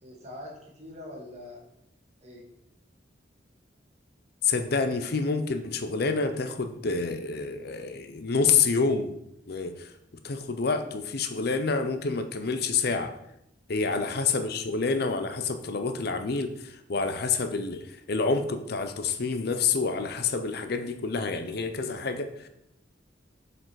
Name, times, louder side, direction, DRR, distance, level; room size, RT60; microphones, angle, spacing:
voice 1, 0.0-1.6 2.2-2.4 13.9-14.1, left 1 dB, 35° right, -2 dB, 2.1 m, -43 dB
voice 2, 4.4-9.2 9.5-9.9 10.2-13.1 13.7-22.5, left 4 dB, 55° left, 9 dB, 0.6 m, -28 dB
7.5 x 5.1 x 4.7 m, 0.80 s
head